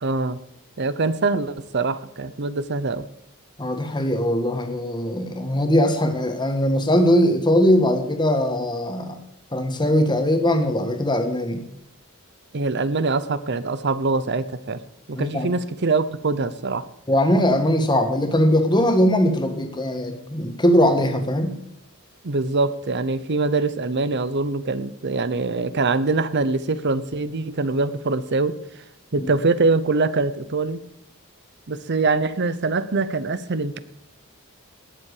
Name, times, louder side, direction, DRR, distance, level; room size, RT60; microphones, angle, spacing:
voice 1, 0.0-0.4 0.8-3.1 12.5-14.8 15.1-16.8 22.2-28.6 29.1-30.8 31.7-33.8, right 3 dB, 55° right, 15 dB, 0.8 m, -23 dB
voice 2, 3.6-9.2 9.5-11.6 15.1-15.5 17.1-21.6 29.2-29.3, equal, 20° left, 6 dB, 1.6 m, -20 dB
19.0 x 7.5 x 4.9 m, 0.80 s
head